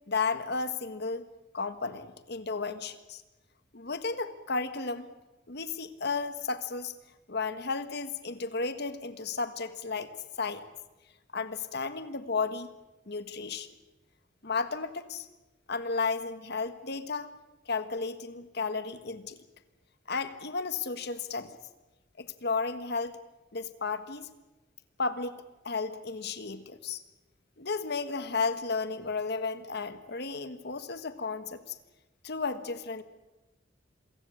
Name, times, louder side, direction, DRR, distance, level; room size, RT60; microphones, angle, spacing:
voice 1, 0.1-1.3 1.5-3.2 3.7-5.1 5.5-6.9 7.3-10.1 10.4-10.7 11.3-12.7 13.1-13.7 14.4-15.3 15.7-17.3 17.7-19.4 20.1-21.6 22.2-23.1 23.5-24.3 25.0-25.3 25.6-27.0 27.6-31.8 32.2-33.0, left 4 dB, 60° left, 11 dB, 1.6 m, -33 dB
27.0 x 16.0 x 8.5 m, 1.1 s
head